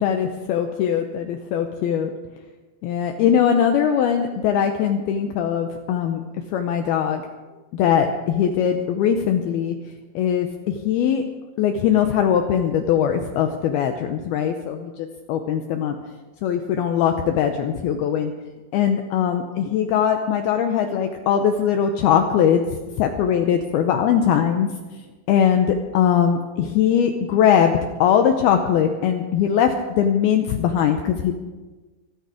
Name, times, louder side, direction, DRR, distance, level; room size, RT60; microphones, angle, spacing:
voice 1, 0.0-2.1 2.8-6.2 6.5-7.2 7.7-9.7 10.2-11.2 11.6-14.9 15.3-16.0 16.4-18.3 18.7-22.6 23.0-24.7 25.3-31.3, left 8 dB, 85° left, 5 dB, 2.2 m, -20 dB
25.0 x 9.4 x 5.0 m, 1.3 s
omnidirectional pair, 5.4 m